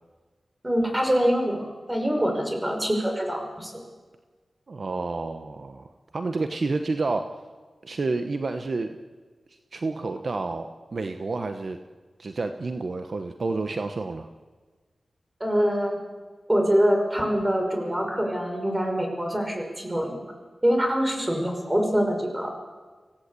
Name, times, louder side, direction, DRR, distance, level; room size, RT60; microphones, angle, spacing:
voice 1, 0.6-3.7 15.4-16.0 16.5-20.2 20.6-22.5, equal, 15° right, 3 dB, 5.7 m, -24 dB
voice 2, 4.7-7.3 7.8-9.0 9.5-11.8 12.2-14.3, right 3 dB, 55° right, 7 dB, 1.2 m, -30 dB
25.0 x 17.0 x 8.5 m, 1.4 s
wide cardioid pair, 85°, 0 cm